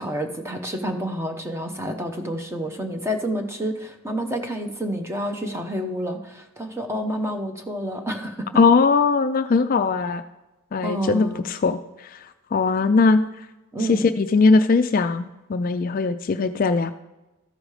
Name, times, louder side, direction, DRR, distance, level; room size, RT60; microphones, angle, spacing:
voice 1, 0.0-8.5 10.8-11.4 13.7-14.1, equal, 10° right, 4 dB, 0.8 m, -29 dB
voice 2, 8.6-10.2 10.7-13.5 13.9-16.9, left 4 dB, 40° left, 10 dB, 0.3 m, -20 dB
13.5 x 5.1 x 4.8 m, 1.0 s
head